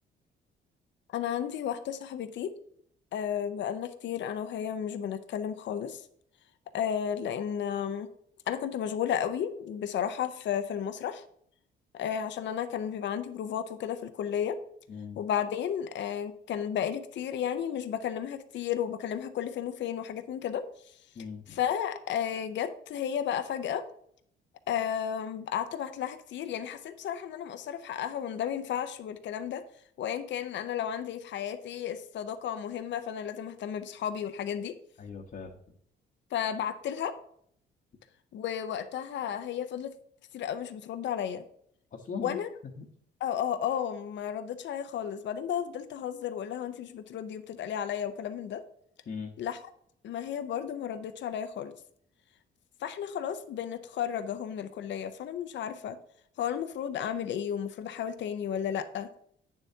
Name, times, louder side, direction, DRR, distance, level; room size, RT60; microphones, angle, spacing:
voice 1, 1.1-2.6 3.1-6.1 6.7-8.1 8.5-11.2 11.9-14.6 15.2-21.0 21.5-23.8 24.7-29.6 30.0-34.8 36.3-37.2 38.3-39.9 40.3-41.4 42.2-42.5 43.2-48.6 49.4-49.6 50.0-51.7 52.8-56.0 56.4-59.1, left 9 dB, 65° left, 10 dB, 0.7 m, -33 dB
voice 2, 14.9-15.2 21.1-21.6 35.0-35.7 41.9-42.4 42.6-42.9 49.1-49.4, left 5 dB, 45° left, 0 dB, 1.1 m, -40 dB
8.9 x 7.1 x 2.8 m, 0.66 s
cardioid pair, 90°, 20 cm